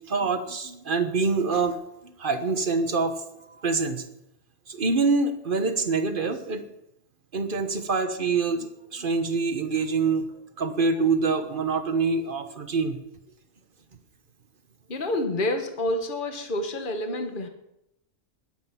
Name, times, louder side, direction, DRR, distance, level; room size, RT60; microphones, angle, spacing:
voice 1, 0.1-1.8 2.2-3.2 3.6-4.0 4.7-6.7 7.3-10.3 10.6-13.0, right 4 dB, 40° right, 8 dB, 1.4 m, -25 dB
voice 2, 14.9-17.5, left 1 dB, 40° left, 5 dB, 1.6 m, -28 dB
21.0 x 8.1 x 5.9 m, 0.84 s
omnidirectional pair, 1.4 m